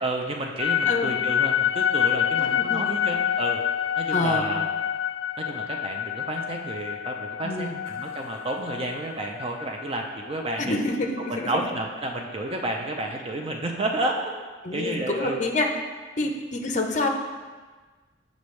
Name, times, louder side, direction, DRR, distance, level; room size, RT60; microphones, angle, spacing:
voice 1, 0.0-3.6 4.0-4.6 5.4-10.8 11.5-14.3 14.7-15.4 16.2-16.3, right 2 dB, 30° right, 2 dB, 0.5 m, -31 dB
sound 1, 0.6-12.8, left 9 dB, 80° left, 0.3 m, -28 dB
voice 2, 0.9-1.2 2.4-3.0 4.1-4.5 7.4-7.8 10.6-11.6 14.6-15.7 16.2-17.1, left 2 dB, 40° left, 3 dB, 0.6 m, -27 dB
8.4 x 5.2 x 3.2 m, 1.4 s
head